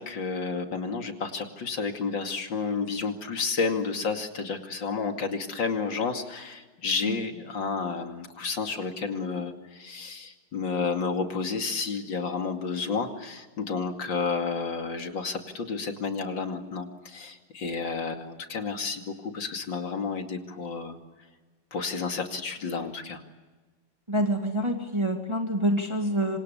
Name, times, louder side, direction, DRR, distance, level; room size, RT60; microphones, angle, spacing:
voice 1, 0.0-21.0 21.7-23.2, left 5 dB, 85° left, 4 dB, 3.1 m, -31 dB
voice 2, 24.1-26.4, equal, 15° right, 3 dB, 2.4 m, -26 dB
28.0 x 26.0 x 7.0 m, 1.2 s
omnidirectional pair, 2.0 m